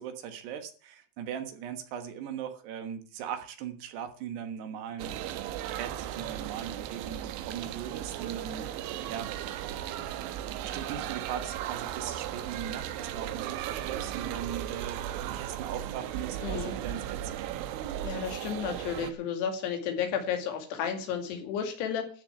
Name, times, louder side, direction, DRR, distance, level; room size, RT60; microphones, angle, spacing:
voice 1, 0.0-5.2 5.8-8.6 9.1-9.3 10.6-17.6, right 8 dB, 70° right, 3.3 m, -39 dB
sound 1, 5.0-19.1, right 11 dB, 90° right, 3.3 m, -36 dB
voice 2, 16.4-16.8 18.0-22.1, left 7 dB, 65° left, 4.3 m, -32 dB
13.5 x 6.8 x 8.1 m
omnidirectional pair, 5.4 m